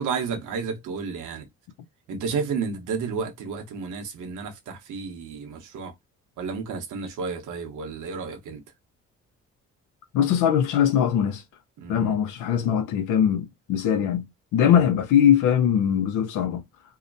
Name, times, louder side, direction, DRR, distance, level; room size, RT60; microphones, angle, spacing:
voice 1, 0.0-1.5 2.1-5.9 6.4-8.6 11.8-12.2 14.6-14.9, right 5 dB, 80° right, 0.9 m, -32 dB
voice 2, 10.1-11.4 11.9-14.2 14.5-16.6, left 9 dB, 90° left, 0.6 m, -21 dB
2.8 x 2.1 x 2.5 m
cardioid pair, 90°, 30 cm